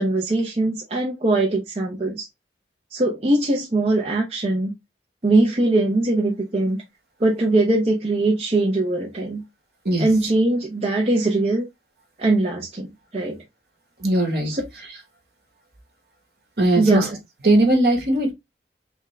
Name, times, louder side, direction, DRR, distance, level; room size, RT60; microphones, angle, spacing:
voice 1, 0.0-2.3 2.9-4.7 5.2-6.8 7.2-9.4 10.0-11.7 12.2-13.4 14.4-14.6 16.8-17.1, right 2 dB, 35° right, 0.7 m, -21 dB
voice 2, 14.0-14.5 16.6-17.0 17.4-18.3, right 1 dB, 60° right, 1.4 m, -19 dB
3.6 x 3.5 x 3.2 m
head